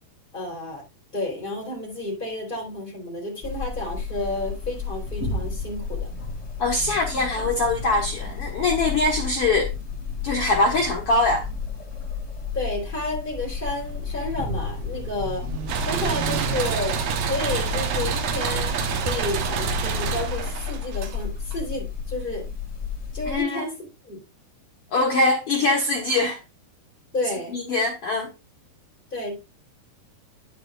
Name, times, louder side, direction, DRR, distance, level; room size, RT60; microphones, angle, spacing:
voice 1, 0.3-0.8 1.1-6.1 12.5-15.4 15.8-22.5 23.1-23.7 24.0-24.2 27.1-27.6 29.1-29.4, left 2 dB, 15° left, 3.4 m, -31 dB
sound 1, 3.4-23.4, left 5 dB, 30° left, 1.5 m, -32 dB
voice 2, 6.6-9.7 10.2-11.4 23.3-23.6 24.9-26.4 27.5-28.3, left 2 dB, 80° left, 1.3 m, -22 dB
sound 2, 13.2-18.3, right 9 dB, 80° right, 2.8 m, -37 dB
sound 3, 15.7-21.5, right 6 dB, 65° right, 2.5 m, -27 dB
9.2 x 8.9 x 2.4 m
omnidirectional pair, 4.6 m